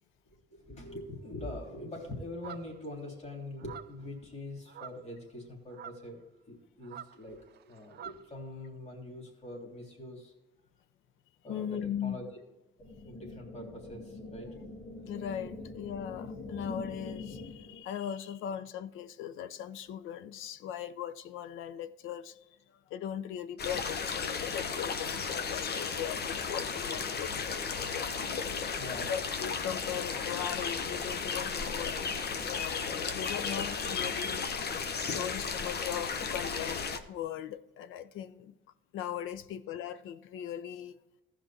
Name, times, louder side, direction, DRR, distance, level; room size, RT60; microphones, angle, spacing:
voice 1, 0.3-6.2 6.5-10.3 11.4-12.2 13.0-14.5 28.5-29.2 35.0-35.5, left 1 dB, 35° left, 3.5 m, -44 dB
sound 1, 2.4-2.9 3.6-4.0 4.7-5.1 5.7-6.1 6.8-8.3, right 10 dB, 55° right, 0.6 m, -47 dB
voice 2, 11.5-12.2 15.1-28.2 28.9-34.5 35.1-38.6 38.9-41.0, left 9 dB, 90° left, 0.7 m, -39 dB
sound 2, 12.8-17.8, left 3 dB, 75° left, 2.9 m, -44 dB
sound 3, 23.6-37.0, left 5 dB, 55° left, 1.1 m, -34 dB
15.0 x 5.2 x 4.4 m
cardioid pair, 90°, 20 cm